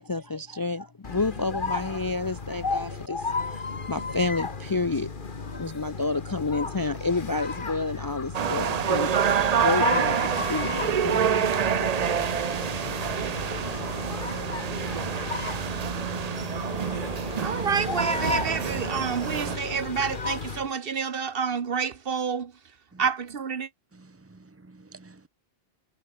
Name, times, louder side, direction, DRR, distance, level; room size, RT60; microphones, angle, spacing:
voice 1, 0.0-5.1 5.5-9.1 9.5-11.6, left 3 dB, 30° left, 0.5 m, -30 dB
sound 1, 1.0-20.7, left 4 dB, 55° left, 1.8 m, -34 dB
sound 2, 8.3-19.6, right 8 dB, 45° right, 0.6 m, -27 dB
voice 2, 17.4-22.5 23.0-23.7, right 6 dB, 65° right, 1.3 m, -28 dB
voice 3, 23.9-25.3, right 3 dB, 15° right, 0.9 m, -51 dB
omnidirectional pair, 1.1 m